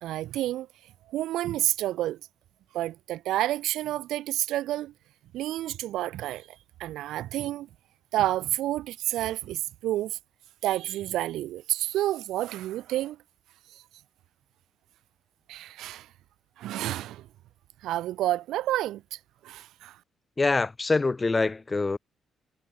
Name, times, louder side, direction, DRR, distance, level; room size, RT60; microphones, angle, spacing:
voice 1, 0.0-0.7 1.1-2.2 2.7-4.9 5.3-6.5 6.8-7.7 8.1-10.2 10.6-13.2 13.7-13.8 15.5-16.1 16.6-17.3 17.8-20.0, right 14 dB, 85° right, 1.5 m, -29 dB
voice 2, 20.4-22.0, left 3 dB, 25° left, 0.4 m, -25 dB
cardioid pair, 90°, 0 cm